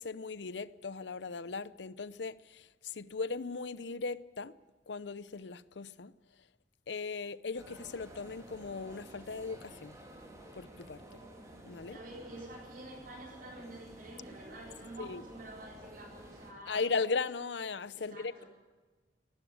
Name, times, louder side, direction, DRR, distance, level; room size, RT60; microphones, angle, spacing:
voice 1, 0.0-4.6 4.9-6.1 6.9-9.9 10.5-11.2 11.7-12.1 15.0-15.2 16.7-18.4, left 4 dB, 85° left, 0.7 m, -38 dB
sound 1, 7.5-16.5, right 1 dB, 20° right, 3.8 m, -52 dB
voice 2, 11.8-16.8 18.0-18.5, right 1 dB, 55° right, 4.9 m, -48 dB
19.0 x 14.0 x 9.4 m
head